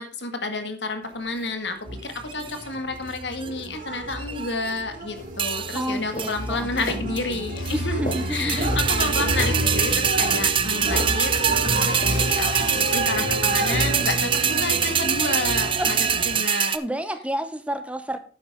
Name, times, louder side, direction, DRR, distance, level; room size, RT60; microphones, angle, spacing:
voice 1, 0.0-8.0 8.3-16.0 16.3-16.7, left 3 dB, 85° left, 7 dB, 2.0 m, -30 dB
sound 1, 1.9-16.4, right 1 dB, 50° right, 2.0 m, -29 dB
sound 2, 2.1-2.6 3.2-3.7 4.1-4.8 5.4-5.9 6.2-6.4 6.8-6.9 7.2-7.8 8.1-16.8, right 8 dB, 30° right, 0.7 m, -24 dB
sound 3, 5.2-15.2, left 2 dB, 50° left, 2.7 m, -39 dB
voice 2, 5.7-7.0 7.7-9.6 15.8-16.1 16.7-18.2, right 1 dB, 5° right, 9 dB, 1.0 m, -31 dB
11.5 x 9.4 x 3.7 m, 0.38 s
head